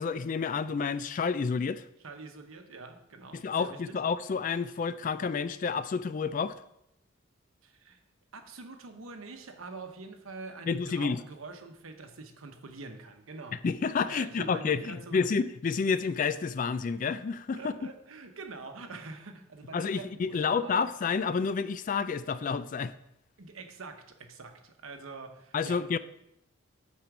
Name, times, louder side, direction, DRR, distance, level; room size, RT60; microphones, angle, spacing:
voice 1, 0.0-1.8 3.3-6.5 10.7-11.2 13.6-17.6 19.7-22.9 25.5-26.0, left 5 dB, 40° left, 14 dB, 0.3 m, -29 dB
voice 2, 2.0-4.0 7.6-8.0 8.3-13.7 14.0-15.3 17.5-20.9 23.4-26.0, right 3 dB, 80° right, 6 dB, 1.0 m, -45 dB
8.5 x 4.4 x 6.0 m, 0.82 s
head